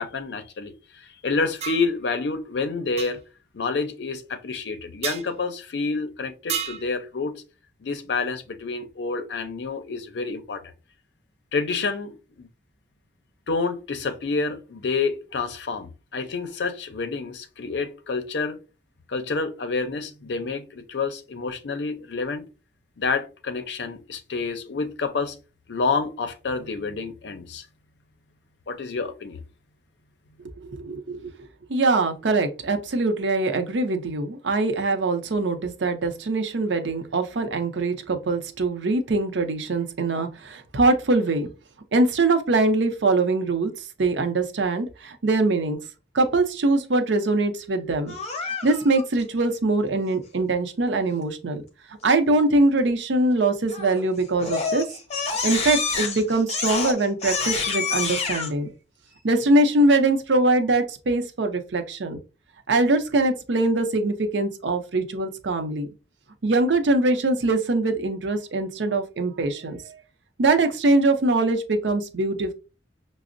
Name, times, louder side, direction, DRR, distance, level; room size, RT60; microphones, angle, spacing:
voice 1, 0.0-3.2 3.5-7.4 7.8-10.6 11.5-12.5 13.5-18.6 19.1-22.5 23.0-25.4 25.7-27.6 28.7-29.4, left 4 dB, 70° left, 0.5 m, -28 dB
sound 1, 1.6-1.9 3.0-3.1 5.0-5.3 6.5-6.9, right 8 dB, 35° right, 0.3 m, -30 dB
voice 2, 30.6-41.5 41.9-45.8 46.1-48.1 48.4-51.6 52.0-54.8 55.4-58.7 59.2-62.2 62.7-65.9 66.4-70.0 70.4-72.5, right 2 dB, 85° right, 0.6 m, -23 dB
Crying sobbing, 48.1-49.0 53.7-54.0 54.4-58.5, left 5 dB, 40° left, 0.7 m, -27 dB
5.8 x 2.0 x 2.5 m
head